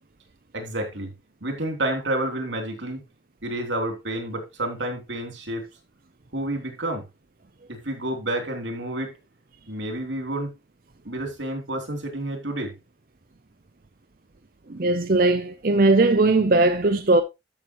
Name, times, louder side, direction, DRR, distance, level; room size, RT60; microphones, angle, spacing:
voice 1, 0.5-1.1 1.4-3.0 3.4-5.6 6.3-7.0 7.7-9.2 9.7-10.5 11.0-12.7, right 1 dB, 85° right, 3.2 m, -29 dB
voice 2, 14.7-17.2, right 2 dB, 50° right, 0.6 m, -19 dB
13.0 x 6.2 x 3.1 m
head